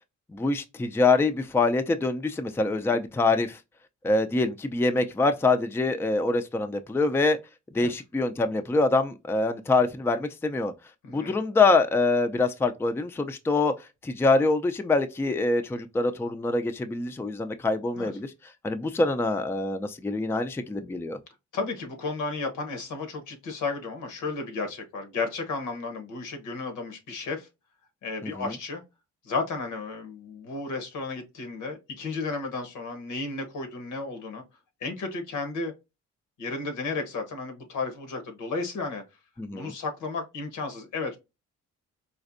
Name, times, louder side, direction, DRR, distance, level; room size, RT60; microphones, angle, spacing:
voice 1, 0.3-3.6 4.0-7.4 7.7-10.7 11.1-13.7 14.0-18.3 18.6-21.2 28.2-28.5 39.4-39.7, left 3 dB, 10° left, 0.3 m, -25 dB
voice 2, 11.0-11.4 18.0-18.1 21.5-27.5 28.0-28.8 29.2-34.4 34.8-35.7 36.4-39.0 39.5-41.2, left 3 dB, 85° left, 1.0 m, -33 dB
4.2 x 2.5 x 2.5 m
cardioid pair, 80°, 30 cm